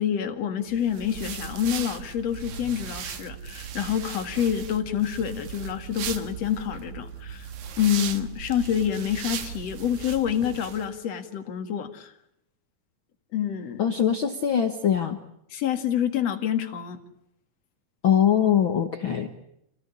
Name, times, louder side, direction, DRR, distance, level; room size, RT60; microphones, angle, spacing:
voice 1, 0.0-7.5 7.8-12.1 13.3-13.8 15.5-17.0, left 9 dB, 50° left, 6 dB, 2.6 m, -27 dB
sound 1, 0.7-10.9, right 8 dB, 60° right, 2.4 m, -37 dB
voice 2, 13.8-15.2 18.0-19.3, left 9 dB, 80° left, 6 dB, 1.1 m, -22 dB
27.0 x 17.5 x 9.9 m, 0.79 s
omnidirectional pair, 4.4 m